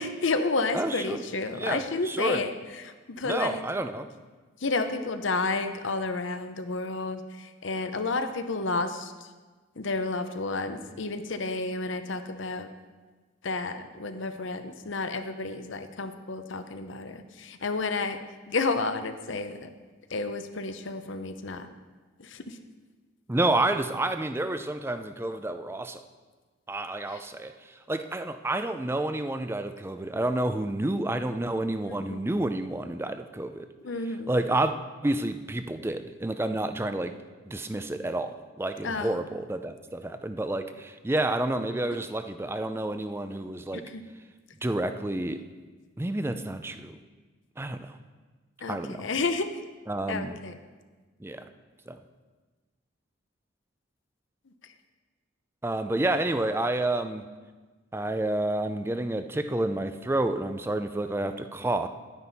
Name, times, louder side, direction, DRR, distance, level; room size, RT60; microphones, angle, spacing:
voice 1, 0.0-2.5 2.8-3.6 4.6-9.1 9.8-12.7 13.4-18.2 18.5-19.7 20.1-21.7 22.2-22.5 32.1-32.2 33.8-34.3 38.8-39.2 43.9-44.0 48.6-49.5 50.1-50.5, left 3 dB, 65° left, 9 dB, 0.7 m, -31 dB
voice 2, 0.7-1.2 1.5-2.4 3.2-4.1 23.3-26.0 26.7-33.7 34.0-34.7 35.0-37.1 37.4-43.8 44.6-45.4 46.0-47.0 47.6-48.0 48.7-49.1 49.9-50.4 51.2-51.4 51.9-52.0 55.6-57.3 57.9-61.9, right 2 dB, 10° right, 9 dB, 0.4 m, -29 dB
11.0 x 9.8 x 4.1 m, 1.3 s
head